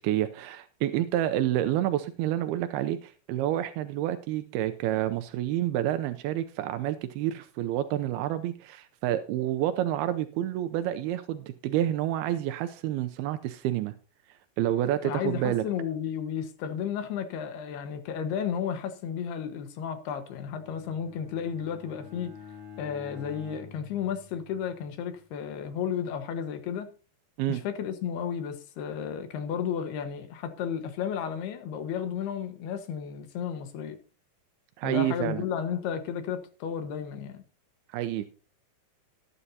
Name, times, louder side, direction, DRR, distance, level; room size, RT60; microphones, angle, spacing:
voice 1, 0.0-13.9 14.6-15.6 27.4-27.6 34.8-35.4 37.9-38.3, right 12 dB, 85° right, 2.6 m, -29 dB
voice 2, 15.0-22.4 22.8-26.9 27.5-34.0 34.8-37.4, left 8 dB, 85° left, 3.4 m, -33 dB
Bowed string instrument, 20.3-24.9, left 7 dB, 40° right, 5.8 m, -47 dB
19.5 x 9.9 x 2.8 m
omnidirectional pair, 4.4 m